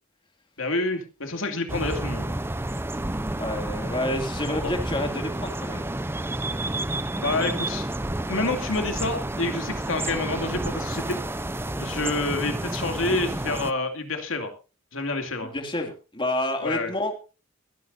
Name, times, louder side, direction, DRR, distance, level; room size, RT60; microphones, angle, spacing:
voice 1, 0.6-2.3 4.5-4.6 7.1-7.9 8.3-11.2 11.8-14.5 14.9-15.5 16.6-16.9, left 2 dB, 75° left, 5 dB, 2.6 m, -28 dB
sound 1, 1.7-13.7, right 1 dB, 10° right, 0.7 m, -30 dB
voice 2, 3.4-5.9 11.7-11.9 15.5-17.1, left 1 dB, 25° left, 4 dB, 2.4 m, -29 dB
23.0 x 10.5 x 2.6 m, 0.32 s
head